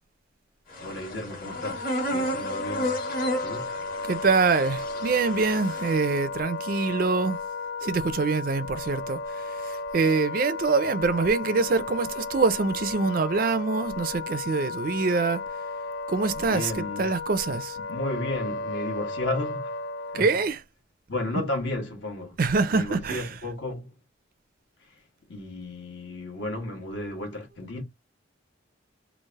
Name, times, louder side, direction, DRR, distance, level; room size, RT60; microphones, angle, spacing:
sound 1, 0.7-5.9, equal, 45° left, 1.4 m, -32 dB
voice 1, 0.8-3.0 3.4-3.8 16.4-17.1 17.9-19.8 20.1-20.3 21.1-22.4 22.7-23.9 24.8-25.0 25.3-27.8, left 2 dB, 65° left, 1.3 m, -33 dB
Wind instrument woodwind instrument, 1.4-20.5, left 3 dB, 85° left, 0.5 m, -34 dB
voice 2, 4.0-7.4 7.8-15.4 16.1-17.8 20.1-20.6 22.4-23.3, right 4 dB, 45° right, 0.4 m, -25 dB
3.2 x 2.4 x 3.5 m
head